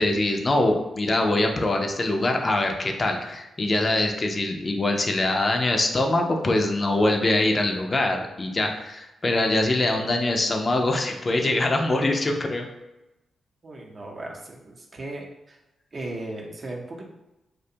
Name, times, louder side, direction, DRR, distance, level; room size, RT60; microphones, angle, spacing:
voice 1, 0.0-12.7, left 2 dB, 40° left, 3 dB, 0.4 m, -23 dB
voice 2, 13.6-15.6 15.9-17.0, right 2 dB, 50° right, 0 dB, 0.6 m, -37 dB
2.4 x 2.2 x 2.7 m, 0.96 s
supercardioid pair, 55°, 0 cm